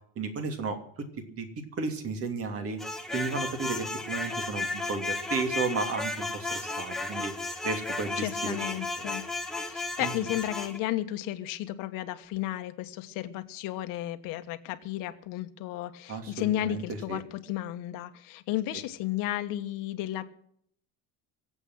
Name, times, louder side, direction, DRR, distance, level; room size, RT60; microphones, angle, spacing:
voice 1, 0.2-1.5 1.8-2.8 3.1-7.3 7.6-8.6 10.0-10.1 16.1-17.2, right 4 dB, 45° right, 6 dB, 2.8 m, -33 dB
sound 1, 2.8-10.8, left 2 dB, ahead, 1.4 m, -34 dB
voice 2, 8.2-9.2 9.6-20.2, left 14 dB, 80° left, 9 dB, 1.4 m, -33 dB
23.5 x 8.1 x 6.2 m, 0.65 s
cardioid pair, 145°, 33 cm